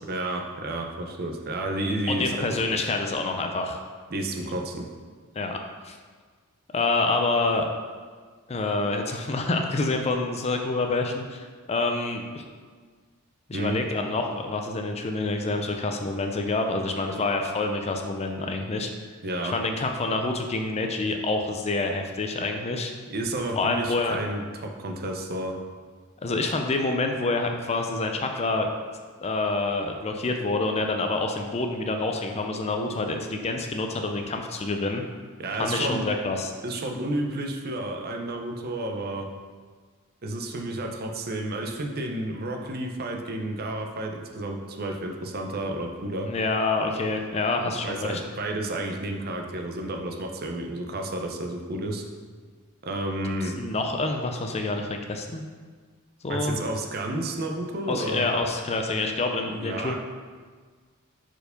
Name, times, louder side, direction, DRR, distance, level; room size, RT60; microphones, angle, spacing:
voice 1, 0.1-2.3 2.7-2.8 4.1-4.8 13.5-13.8 19.2-19.5 23.1-25.5 35.4-36.1 36.6-39.3 40.2-46.3 47.6-52.0 52.8-53.5 56.3-58.2 59.5-60.0, right 1 dB, 45° right, 2 dB, 0.6 m, -31 dB
voice 2, 2.1-3.8 5.4-5.6 5.8-6.0 6.7-7.7 8.5-12.4 13.5-18.9 19.5-22.9 23.5-24.2 26.2-28.7 29.2-35.0 35.6-36.5 46.3-48.2 53.6-55.4 56.2-56.6 57.9-60.0, left 3 dB, 30° left, 4 dB, 0.5 m, -27 dB
4.6 x 4.5 x 5.1 m, 1.5 s
head